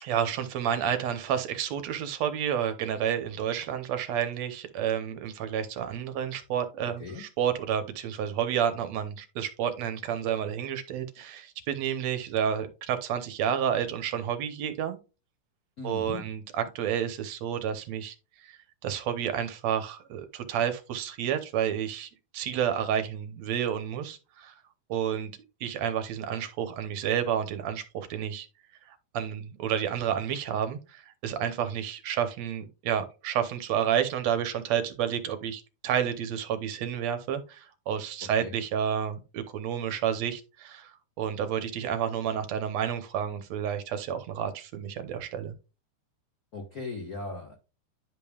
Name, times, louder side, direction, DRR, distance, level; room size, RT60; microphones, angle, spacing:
voice 1, 0.0-15.0 15.8-18.2 18.4-24.6 24.9-25.3 25.6-28.5 28.9-45.5, right 9 dB, 70° right, 1.9 m, -30 dB
voice 2, 15.8-16.3 38.4-38.6 46.5-47.5, left 3 dB, 80° left, 0.8 m, -38 dB
10.5 x 5.3 x 2.3 m
omnidirectional pair, 3.6 m